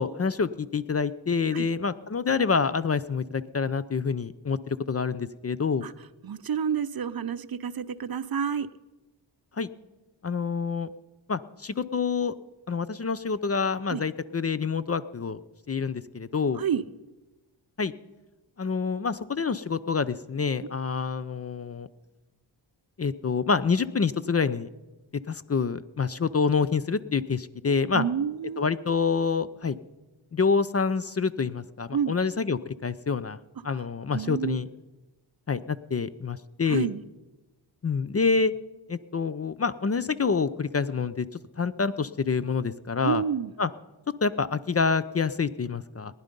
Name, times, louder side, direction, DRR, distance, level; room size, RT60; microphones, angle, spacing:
voice 1, 0.0-5.9 9.6-9.7 10.2-10.9 11.3-12.3 12.7-15.4 15.7-16.6 17.8-17.9 18.6-21.9 23.0-24.7 25.3-28.0 28.6-29.8 30.3-33.4 33.6-34.7 35.5-36.9 37.8-38.5 38.9-41.3 41.6-43.2 43.6-43.7 44.2-46.1, left 5 dB, 30° left, 15 dB, 0.5 m, -27 dB
voice 2, 6.2-8.7 13.9-14.0 16.6-16.8 27.9-28.6 31.9-32.1 34.1-34.6 36.7-37.0 43.0-43.5, right 7 dB, 50° right, 13 dB, 0.7 m, -29 dB
20.0 x 10.5 x 5.3 m, 1.1 s
cardioid pair, 75°, 47 cm